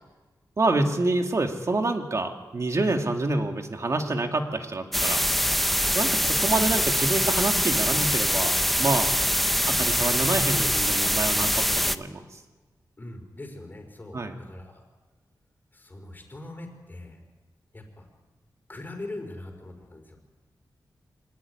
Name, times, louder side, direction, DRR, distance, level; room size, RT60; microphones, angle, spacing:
voice 1, 0.6-5.2 5.9-9.1 9.7-12.4 14.1-14.4, right 2 dB, 40° right, 4 dB, 2.4 m, -27 dB
sound 1, 4.9-12.0, equal, ahead, 0.8 m, -24 dB
voice 2, 13.0-14.8 15.7-17.2 17.7-18.1 18.7-20.2, left 2 dB, 25° left, 3 dB, 4.8 m, -42 dB
25.0 x 18.5 x 9.8 m, 1.2 s
wide cardioid pair, 150°, 8 cm